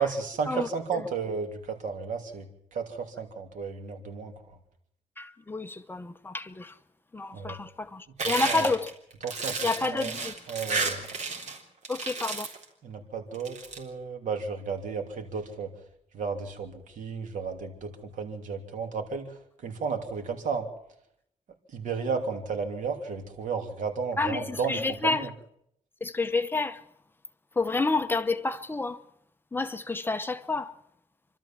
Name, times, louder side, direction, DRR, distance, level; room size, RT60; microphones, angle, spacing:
voice 1, 0.0-4.3 7.3-7.6 8.2-8.7 9.2-10.1 10.5-11.0 12.8-15.7 16.1-19.3 19.6-20.7 21.7-25.3, right 5 dB, 80° right, 3.0 m, -33 dB
voice 2, 5.2-6.7 7.1-8.9 9.6-10.3 11.9-12.5 24.2-24.4 24.7-25.2 26.0-26.8 27.6-29.0 29.5-30.7, left 3 dB, 15° left, 0.9 m, -29 dB
sound 1, 8.2-11.6 11.8-12.6 13.3-13.8, right 4 dB, 60° right, 3.7 m, -32 dB
28.0 x 12.5 x 7.4 m
wide cardioid pair, 135°, 13 cm